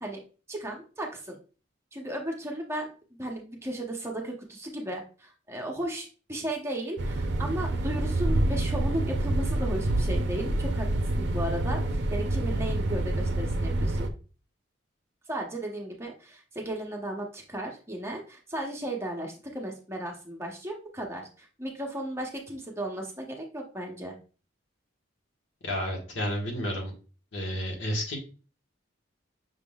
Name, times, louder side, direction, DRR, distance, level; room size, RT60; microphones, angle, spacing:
voice 1, 0.5-1.4 1.9-2.9 3.2-10.9 11.2-14.1 15.3-24.1, right 1 dB, 15° right, 0 dB, 0.8 m, -35 dB
sound 1, 7.0-14.1, right 1 dB, 60° right, 0.6 m, -27 dB
voice 2, 25.6-26.9 27.3-28.2, equal, 75° left, 0 dB, 1.5 m, -31 dB
6.2 x 3.6 x 2.3 m, 0.36 s
head